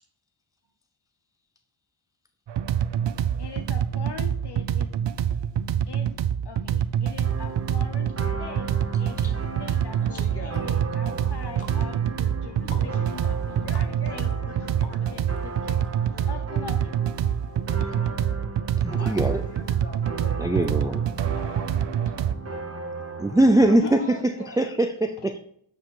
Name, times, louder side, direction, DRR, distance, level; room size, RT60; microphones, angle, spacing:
sound 1, 2.5-22.3, right 9 dB, 60° right, 0.6 m, -26 dB
voice 1, 3.4-4.9 5.9-6.1 6.4-8.1 8.4-8.7 9.0-15.8 16.0-17.0 23.8-24.1, left 6 dB, 55° left, 6 dB, 0.8 m, -41 dB
sound 2, 7.2-23.8, right 3 dB, 30° right, 0.9 m, -37 dB
sound 3, 10.0-15.4 15.8-15.9, left 3 dB, 90° left, 1.6 m, -49 dB
voice 2, 10.1-10.7 11.7-11.9 12.6-15.3 16.1-16.5 17.5-18.3 19.0-20.4 20.8-22.2 23.8-24.7, left 1 dB, 25° left, 0 dB, 2.3 m, -43 dB
voice 3, 18.8-19.4 20.4-21.1 23.2-24.2 24.6-25.4, right 1 dB, 10° right, 6 dB, 0.5 m, -21 dB
8.7 x 5.0 x 3.8 m, 0.68 s
wide cardioid pair, 115°, 49 cm